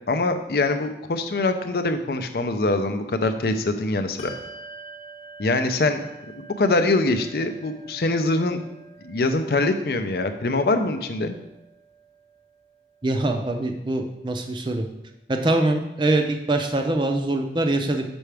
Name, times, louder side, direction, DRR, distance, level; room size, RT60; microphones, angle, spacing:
voice 1, 0.1-4.3 5.4-6.0 6.4-8.6 9.0-11.4, left 2 dB, 60° left, 8 dB, 0.5 m, -23 dB
Bell, 4.2-14.2, right 3 dB, 35° left, 0.9 m, -47 dB
voice 2, 13.0-14.9 15.3-18.0, right 2 dB, 25° right, 4 dB, 0.5 m, -23 dB
6.1 x 5.7 x 3.4 m, 0.93 s
head